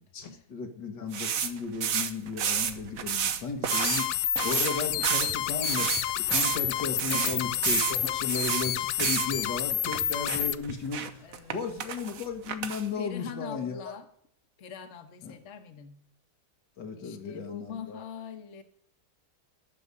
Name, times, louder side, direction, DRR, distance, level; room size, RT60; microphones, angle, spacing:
voice 1, 0.1-11.3 11.5-13.9 15.2-15.4 16.8-18.0, left 5 dB, 85° left, 4 dB, 2.2 m, -35 dB
sound 1, 1.1-4.1 4.4-8.7 9.0-9.3 9.9-10.0 10.3-11.5 11.8-12.9, right 7 dB, 60° right, 1.3 m, -30 dB
sound 2, 3.7-10.6, left 11 dB, 65° left, 0.9 m, -29 dB
sound 3, 5.3-5.4 5.8-6.7 7.1-8.2 8.5-10.8, equal, 5° right, 0.5 m, -46 dB
voice 2, 7.1-7.6 8.7-8.8 11.2-11.6 13.0-14.1 14.6-16.0 16.9-18.6, left 7 dB, 45° left, 7 dB, 1.4 m, -42 dB
11.5 x 6.9 x 9.6 m, 0.66 s
omnidirectional pair, 1.8 m